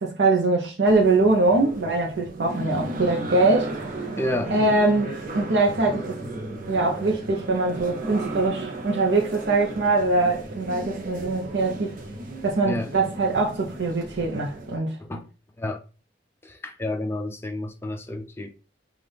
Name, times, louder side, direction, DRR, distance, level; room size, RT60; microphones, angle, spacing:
voice 1, 0.0-3.8 4.5-5.1 5.3-6.2 6.7-12.0 12.4-14.9, right 2 dB, 85° right, 0.7 m, -22 dB
sound 1, 0.9-14.8, right 2 dB, 50° right, 0.7 m, -35 dB
voice 2, 4.2-4.6 12.6-12.9 15.0-15.3 15.6-15.8 16.4-18.5, left 1 dB, 15° left, 0.5 m, -30 dB
5.5 x 2.4 x 3.4 m
head